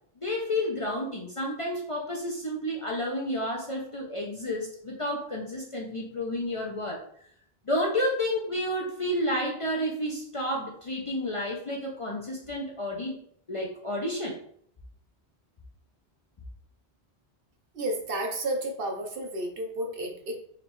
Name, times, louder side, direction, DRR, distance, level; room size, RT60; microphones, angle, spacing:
voice 1, 0.2-7.0 7.7-13.2 13.5-14.4, left 1 dB, 40° left, -2 dB, 0.5 m, -30 dB
voice 2, 17.7-20.4, right 1 dB, 60° right, 2 dB, 0.9 m, -32 dB
4.0 x 3.1 x 3.0 m, 0.63 s
omnidirectional pair, 1.1 m